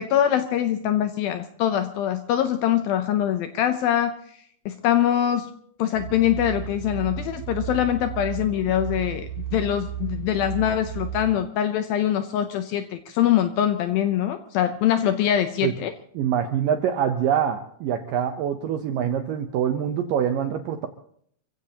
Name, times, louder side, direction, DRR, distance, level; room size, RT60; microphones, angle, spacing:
voice 1, 0.0-4.1 4.7-5.5 5.8-15.9, left 10 dB, 80° left, 9 dB, 2.2 m, -23 dB
sound 1, 5.9-11.4, right 10 dB, 50° right, 8.0 m, -33 dB
voice 2, 16.2-20.9, right 9 dB, 80° right, 7 dB, 2.0 m, -25 dB
28.5 x 15.5 x 2.9 m, 0.65 s
omnidirectional pair, 4.9 m